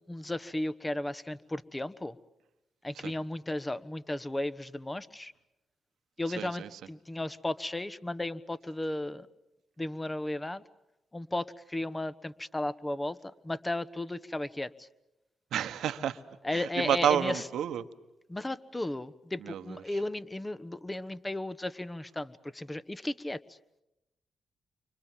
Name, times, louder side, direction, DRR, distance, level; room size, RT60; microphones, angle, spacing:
voice 1, 0.0-2.2 2.8-5.3 6.2-9.3 9.8-10.6 11.1-13.2 13.4-14.9 16.4-17.4 18.3-23.4, left 1 dB, 20° left, 15 dB, 1.2 m, -35 dB
voice 2, 6.4-6.8 15.5-16.2 16.5-17.8 19.4-20.0, right 9 dB, 80° right, 10 dB, 1.2 m, -30 dB
29.5 x 25.0 x 7.5 m, 0.93 s
supercardioid pair, 55°, 0 cm